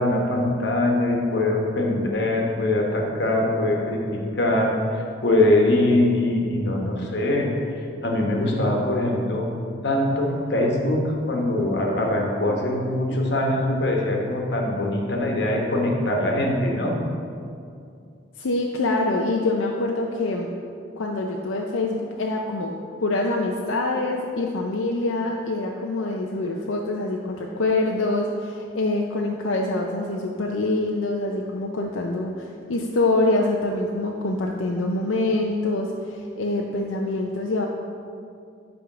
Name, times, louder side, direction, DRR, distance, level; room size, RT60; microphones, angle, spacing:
voice 1, 0.0-7.5 8.0-9.5 9.8-16.9, left 1 dB, 55° left, 0 dB, 1.2 m, -22 dB
voice 2, 18.4-20.5 21.0-22.7 23.0-37.7, left 2 dB, 80° left, 0 dB, 0.6 m, -25 dB
10.0 x 3.6 x 6.0 m, 2.4 s
head